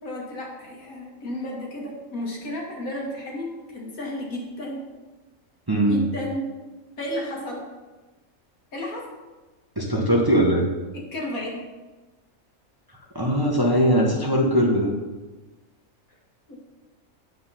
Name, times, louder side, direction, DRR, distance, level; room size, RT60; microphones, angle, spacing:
voice 1, 0.0-4.8 5.9-6.5 7.0-7.6 8.7-9.1 10.9-11.6 16.5-16.6, equal, 80° left, -2 dB, 2.3 m, -32 dB
voice 2, 5.7-6.0 9.8-10.7 13.1-14.9, equal, 20° right, -1 dB, 0.9 m, -20 dB
9.4 x 4.7 x 5.6 m, 1.2 s
omnidirectional pair, 1.4 m